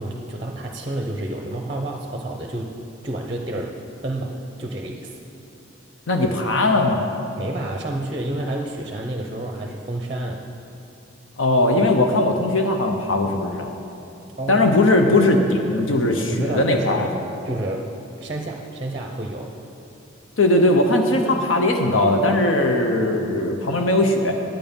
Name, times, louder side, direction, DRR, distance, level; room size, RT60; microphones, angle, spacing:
voice 1, 0.0-2.8 3.0-3.8 4.0-5.2 7.4-10.5 14.4-14.6 16.3-17.1 17.4-17.9 18.2-19.5, right 1 dB, 25° right, 2 dB, 0.6 m, -29 dB
voice 2, 6.1-7.0 11.4-13.7 14.5-17.1 20.4-24.3, left 2 dB, 75° left, 3 dB, 0.8 m, -19 dB
9.5 x 9.1 x 5.3 m, 2.9 s
head